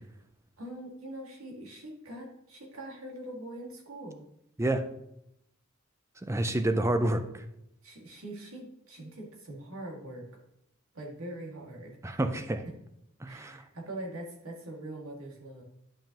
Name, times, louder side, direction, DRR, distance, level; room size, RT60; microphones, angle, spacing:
voice 1, 0.6-4.2 7.8-10.4 10.9-12.2 13.2-15.6, right 1 dB, 85° right, -1 dB, 2.0 m, -43 dB
voice 2, 6.2-7.4 12.0-12.6 13.2-13.6, right 1 dB, 15° right, 9 dB, 0.5 m, -28 dB
11.0 x 5.4 x 2.9 m, 0.79 s
head